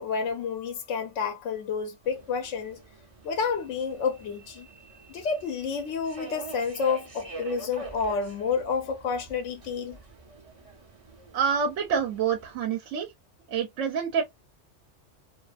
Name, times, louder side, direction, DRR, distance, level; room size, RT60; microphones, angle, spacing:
voice 1, 0.0-2.8 3.2-4.7 5.1-10.0, left 5 dB, 80° left, 0.9 m, -29 dB
Subway metro underground, 2.0-12.6, right 2 dB, 40° right, 0.5 m, -46 dB
voice 2, 11.3-13.1 13.5-14.2, right 6 dB, 90° right, 0.9 m, -27 dB
2.5 x 2.3 x 2.3 m
omnidirectional pair, 1.3 m